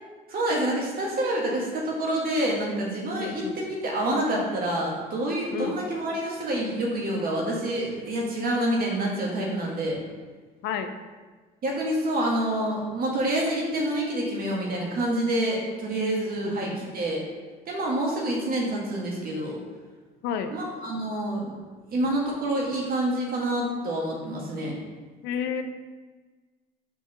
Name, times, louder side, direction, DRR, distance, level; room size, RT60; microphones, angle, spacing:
voice 1, 0.3-10.0 11.6-17.2 17.6-19.6 20.5-21.6 21.9-24.7, right 1 dB, 55° right, -2 dB, 1.6 m, -27 dB
voice 2, 3.2-3.6 5.5-5.8 10.6-10.9 16.4-16.8 20.2-20.6 25.2-25.6, left 7 dB, 75° left, 8 dB, 0.6 m, -31 dB
4.6 x 4.5 x 5.4 m, 1.4 s
supercardioid pair, 70°, 18 cm